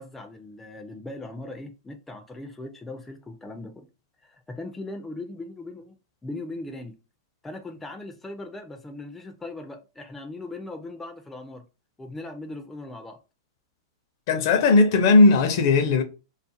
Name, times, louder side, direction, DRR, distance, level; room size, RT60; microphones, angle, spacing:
voice 1, 0.0-3.9 4.2-6.0 6.2-7.0 7.4-11.7 12.0-13.2, left 2 dB, 10° left, 0.3 m, -39 dB
voice 2, 14.3-16.0, left 3 dB, 55° left, 0.6 m, -17 dB
2.4 x 2.4 x 2.6 m
hypercardioid pair, 130°, 2 cm